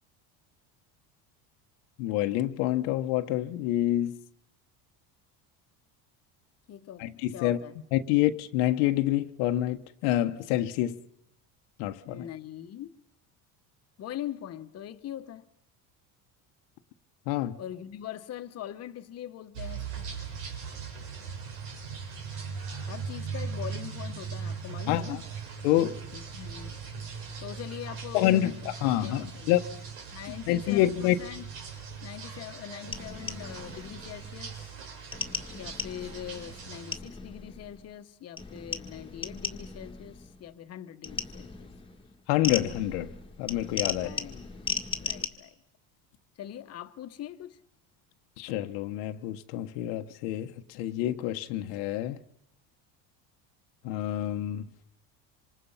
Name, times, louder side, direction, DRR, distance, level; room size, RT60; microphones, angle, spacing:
voice 1, 2.0-4.2 7.0-7.6 7.9-10.9 11.8-12.2 17.3-17.6 24.9-25.2 25.6-26.0 28.1-29.6 30.5-31.1 42.3-43.1 43.4-44.1 48.4-52.2 53.8-54.7, left 14 dB, 85° left, 1.3 m, -27 dB
voice 2, 6.7-7.7 12.0-13.0 14.0-15.5 17.6-20.1 22.9-25.2 26.1-26.8 27.4-28.3 28.6-28.7 29.0-29.5 30.1-31.5 32.0-34.7 35.5-41.7 43.9-44.5 45.0-45.5 46.4-47.6, left 11 dB, 40° left, 1.3 m, -42 dB
sound 1, 19.5-37.0, right 5 dB, 85° right, 6.0 m, -39 dB
sound 2, 32.9-34.3 35.1-38.0 38.4-40.5 41.0-45.3, left 4 dB, 15° left, 1.8 m, -37 dB
26.5 x 26.0 x 5.7 m
cardioid pair, 140°, 39 cm